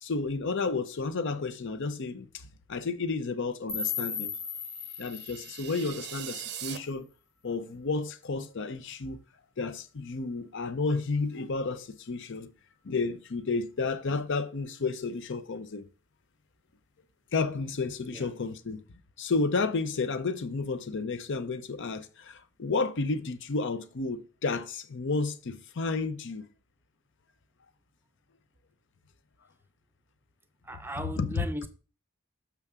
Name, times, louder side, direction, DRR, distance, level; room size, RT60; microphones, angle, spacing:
voice 1, 0.0-2.4 2.7-4.3 5.0-7.1 7.4-9.2 9.6-12.5 12.8-15.8 17.3-18.8 19.2-26.5 31.0-31.5, left 3 dB, 55° left, 0.6 m, -31 dB
sound 1, 3.7-6.7, left 7 dB, 75° left, 1.3 m, -37 dB
sound 2, 4.8-6.8, right 10 dB, 50° right, 0.6 m, -41 dB
voice 2, 30.6-31.7, right 1 dB, 10° right, 0.6 m, -37 dB
6.9 x 5.7 x 3.5 m
head